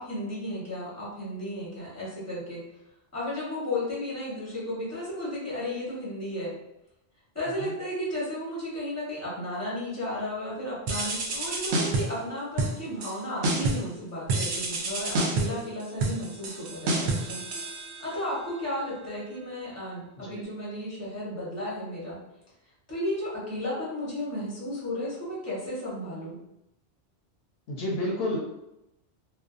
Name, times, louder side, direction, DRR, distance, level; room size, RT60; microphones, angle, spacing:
voice 1, 0.0-2.6 3.1-6.6 7.3-17.4 18.0-22.2 22.9-26.4, left 1 dB, 15° left, -7 dB, 0.9 m, -34 dB
sound 1, 10.9-12.2 12.6-13.1 13.4-13.9 14.3-18.3, right 2 dB, 90° right, 0.9 m, -29 dB
voice 2, 27.7-28.4, left 1 dB, 70° left, -2 dB, 0.8 m, -30 dB
2.5 x 2.2 x 2.4 m, 0.88 s
omnidirectional pair, 1.1 m